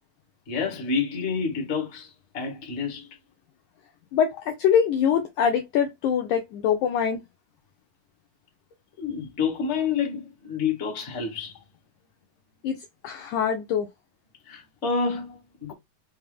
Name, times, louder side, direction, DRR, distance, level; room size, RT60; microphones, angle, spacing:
voice 1, 0.5-3.1 9.0-11.6 14.5-15.7, left 5 dB, 50° left, 0.8 m, -29 dB
voice 2, 4.1-7.2 12.6-12.8 13.0-13.9, left 8 dB, 90° left, 1.7 m, -23 dB
5.8 x 2.0 x 3.3 m
omnidirectional pair, 4.2 m